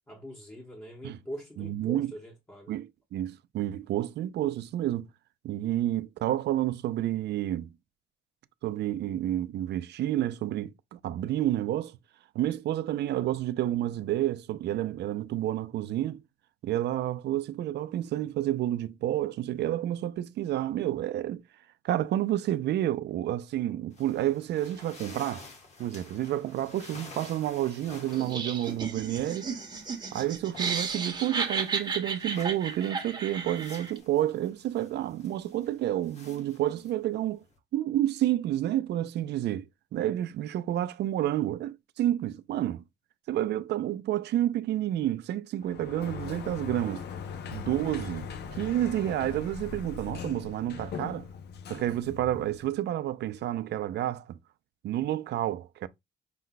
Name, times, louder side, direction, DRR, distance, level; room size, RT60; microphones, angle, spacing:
voice 1, 0.1-2.8, equal, 10° left, 0.9 m, -43 dB
voice 2, 1.6-2.1 2.7-5.1 5.4-7.7 8.6-12.0 12.3-16.2 16.6-21.4 21.8-25.5 25.8-29.5 30.1-37.4 37.7-39.7 39.9-42.8 43.3-47.0 47.5-51.2 51.7-54.4 54.8-55.9, right 13 dB, 65° right, 0.4 m, -30 dB
sound 1, 23.9-37.6, left 3 dB, 35° left, 1.1 m, -52 dB
Laughter, 28.1-34.0, right 5 dB, 25° right, 1.0 m, -34 dB
Sliding door, 45.6-52.7, left 6 dB, 65° left, 0.7 m, -40 dB
5.5 x 2.2 x 3.9 m
cardioid pair, 160°, 18 cm